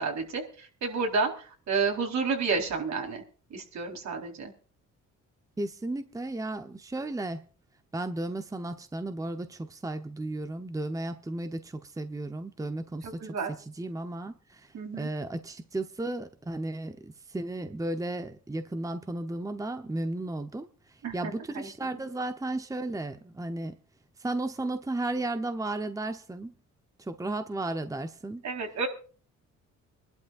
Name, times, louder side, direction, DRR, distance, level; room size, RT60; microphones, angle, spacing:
voice 1, 0.0-3.2 3.5-4.5 13.0-13.5 14.7-15.1 21.0-21.7 28.4-28.9, right 4 dB, 65° right, 3 dB, 4.2 m, -31 dB
voice 2, 5.6-7.5 7.9-23.8 24.2-26.5 27.0-28.4, right 2 dB, 10° right, 8 dB, 1.0 m, -34 dB
26.0 x 12.0 x 2.5 m, 0.39 s
cardioid pair, 90°, 30 cm